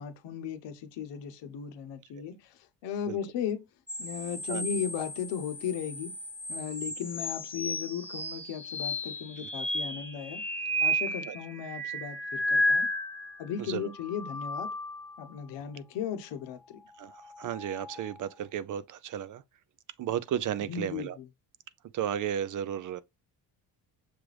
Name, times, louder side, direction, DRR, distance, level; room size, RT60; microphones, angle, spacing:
voice 1, 0.0-2.5 2.8-3.6 4.0-6.1 6.5-10.4 10.8-12.9 13.4-14.7 15.2-16.8 20.7-21.1, left 8 dB, 70° left, 0.9 m, -36 dB
sound 1, 3.9-13.4 13.9-15.3 17.1-18.2, equal, 5° left, 0.7 m, -33 dB
voice 2, 13.6-13.9 17.0-19.4 20.0-21.2 21.9-23.0, right 10 dB, 45° right, 0.4 m, -34 dB
6.2 x 2.5 x 3.2 m
cardioid pair, 90°, 43 cm